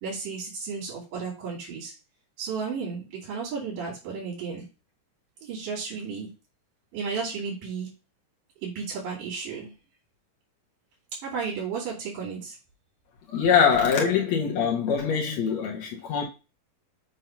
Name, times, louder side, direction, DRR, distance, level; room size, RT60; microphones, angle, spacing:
voice 1, 0.0-1.9 2.4-4.6 5.4-6.3 6.9-7.9 8.6-9.7 11.2-12.6, right 5 dB, 85° right, 4.2 m, -33 dB
voice 2, 13.3-16.2, left 7 dB, 65° left, 2.1 m, -23 dB
7.6 x 2.7 x 5.7 m
omnidirectional pair, 3.7 m